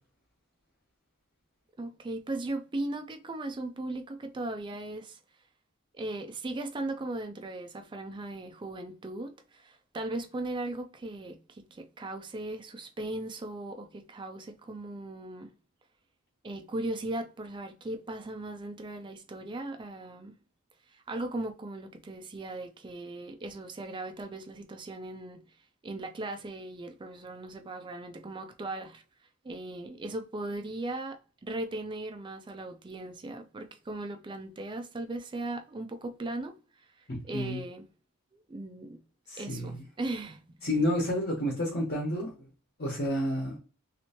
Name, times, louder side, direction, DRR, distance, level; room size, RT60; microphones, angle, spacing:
voice 1, 1.8-5.2 5.9-15.5 16.4-20.4 20.9-25.4 25.8-29.0 29.4-36.5 37.3-37.9 38.3-39.0 39.4-40.6, right 2 dB, 20° right, 0.4 m, -38 dB
voice 2, 37.1-37.6 39.3-39.8 40.6-42.5 42.8-43.6, left 1 dB, 45° left, 1.1 m, -30 dB
3.2 x 3.0 x 2.9 m
head